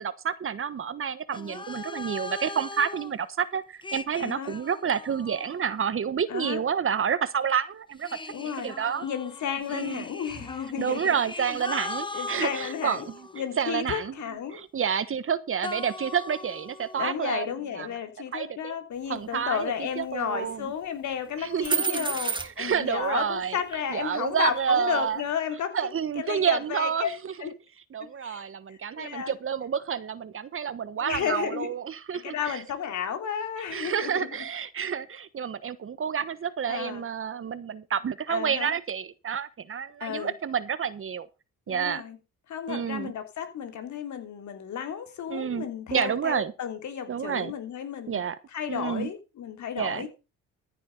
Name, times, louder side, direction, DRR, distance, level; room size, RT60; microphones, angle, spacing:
voice 1, 0.0-8.1 8.4-9.0 9.7-10.0 10.8-13.2 13.6-14.1 14.5-17.9 18.3-18.8 19.1-20.7 21.4-23.6 23.9-25.2 25.7-27.3 27.9-32.6 33.7-41.3 41.7-42.0 42.7-43.1 45.3-46.5 47.1-47.5 48.1-48.4 48.7-49.1 49.8-50.1, right 7 dB, 45° right, 1.3 m, -29 dB
sound 1, 1.3-3.1 3.8-6.0 8.0-13.6 15.6-17.1, left 3 dB, 15° left, 1.1 m, -39 dB
voice 2, 4.2-4.5 6.3-6.6 8.3-8.7 9.0-11.1 11.4-11.5 12.1-13.0 13.3-14.6 17.0-25.7 26.1-27.1 27.4-27.5 28.0-29.3 31.0-31.7 32.1-34.3 36.7-37.0 38.3-38.7 40.0-40.3 41.7-42.2 42.5-48.2 48.5-50.1, left 8 dB, 70° left, 3.2 m, -33 dB
sound 2, 21.6-22.8 23.7-23.8, right 5 dB, 15° right, 2.0 m, -28 dB
14.5 x 7.6 x 5.4 m
cardioid pair, 90°, 30 cm